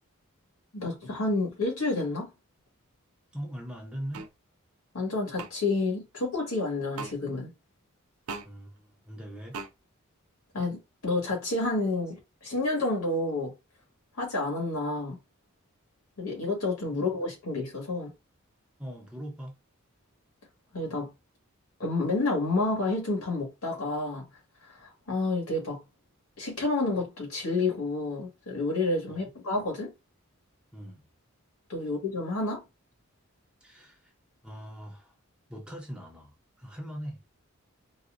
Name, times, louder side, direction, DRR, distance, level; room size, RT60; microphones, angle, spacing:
voice 1, 0.7-2.3 4.9-7.5 10.5-13.5 14.1-15.2 16.2-18.1 20.7-21.1 21.8-24.3 24.6-25.8 26.4-29.9 31.7-32.6, left 2 dB, 80° left, 1.7 m, -29 dB
voice 2, 3.3-4.3 8.4-9.6 16.9-17.0 18.8-19.6 29.1-29.3 30.7-31.0 33.6-34.1 34.4-35.1 35.5-37.2, equal, 5° right, 0.7 m, -41 dB
sound 1, 4.1-4.3 5.4-5.5 7.0-7.1 8.3-8.5 9.5-9.7, right 4 dB, 80° right, 0.6 m, -37 dB
4.1 x 2.2 x 2.5 m
head